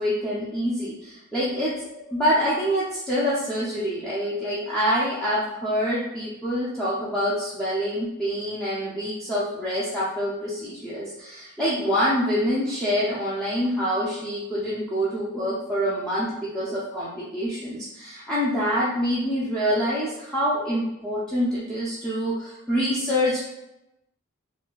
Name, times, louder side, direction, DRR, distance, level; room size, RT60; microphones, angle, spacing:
voice 1, 0.0-23.4, equal, 5° left, -10 dB, 0.4 m, -26 dB
4.3 x 2.3 x 2.2 m, 0.89 s
head